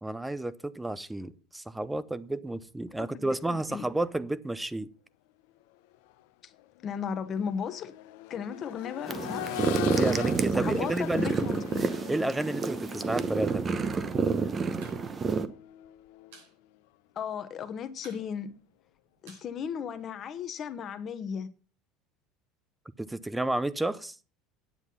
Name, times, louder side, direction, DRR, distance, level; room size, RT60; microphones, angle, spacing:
voice 1, 0.0-4.9 9.9-11.4 12.1-13.8 23.0-24.2, right 2 dB, 5° right, 0.7 m, -31 dB
voice 2, 3.0-3.8 6.4-6.5 6.8-7.9 8.3-9.5 10.5-11.9 17.2-18.6 19.2-21.5, left 7 dB, 40° left, 1.1 m, -35 dB
Accelerating revving vroom, 5.9-6.1 6.5-16.4 18.1-18.2, left 14 dB, 75° left, 0.7 m, -41 dB
sound 1, 9.1-15.5, right 5 dB, 30° right, 0.9 m, -29 dB
sound 2, 14.8-15.0 15.3-15.4 15.7-16.5 16.9-17.0 17.2-17.6 18.0-20.3, right 5 dB, 85° right, 6.6 m, -54 dB
9.5 x 7.9 x 5.6 m
supercardioid pair, 115°, 0 cm